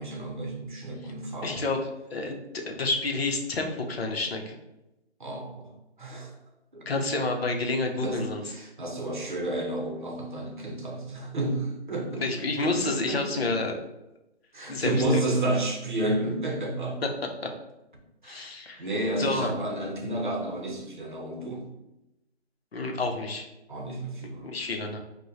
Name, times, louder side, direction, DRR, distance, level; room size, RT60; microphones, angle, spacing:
voice 1, 0.0-1.7 5.2-5.7 6.0-6.3 6.7-6.8 8.0-13.5 14.5-17.0 18.2-18.5 18.8-21.7 23.7-24.6, right 1 dB, 45° right, 0 dB, 0.8 m, -31 dB
voice 2, 1.4-1.8 2.1-4.6 6.9-8.4 12.1-13.8 14.7-14.9 18.2-18.8 19.2-19.5 22.7-23.5 24.4-25.0, left 3 dB, 60° left, 3 dB, 0.8 m, -29 dB
4.7 x 2.3 x 2.7 m, 0.93 s
hypercardioid pair, 170°, 34 cm